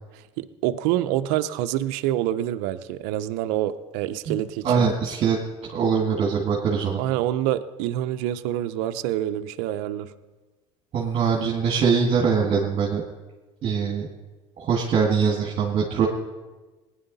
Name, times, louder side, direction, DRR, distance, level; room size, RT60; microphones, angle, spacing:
voice 1, 0.4-4.8 7.0-10.1, right 13 dB, 80° right, 10 dB, 0.6 m, -26 dB
voice 2, 4.3-7.0 10.9-13.0 13.6-14.1 14.6-16.1, right 6 dB, 45° right, -2 dB, 2.0 m, -23 dB
18.5 x 9.8 x 4.1 m, 1.2 s
supercardioid pair, 105°, 14 cm